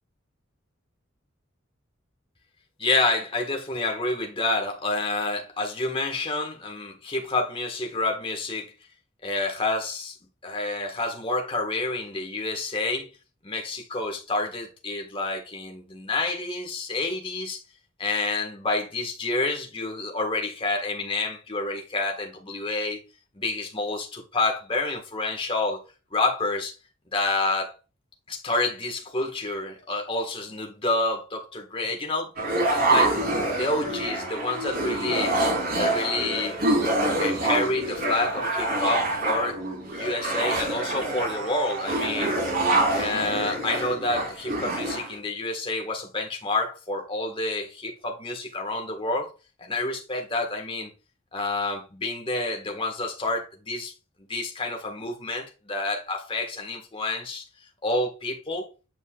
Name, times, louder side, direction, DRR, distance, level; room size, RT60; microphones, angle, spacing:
voice 1, 2.8-8.7 9.2-10.1 10.4-13.1 13.4-17.6 18.0-23.0 23.3-25.8 26.1-26.7 27.1-27.7 28.3-32.3 32.7-33.2 33.5-35.4 35.8-36.6 37.2-42.4 42.9-49.3 49.6-50.9 51.3-53.9 54.3-57.4 57.8-58.7, left 2 dB, 25° left, 1.6 m, -28 dB
sound 1, 32.4-45.2, right 2 dB, 50° right, 3.3 m, -26 dB
9.3 x 5.5 x 2.4 m
head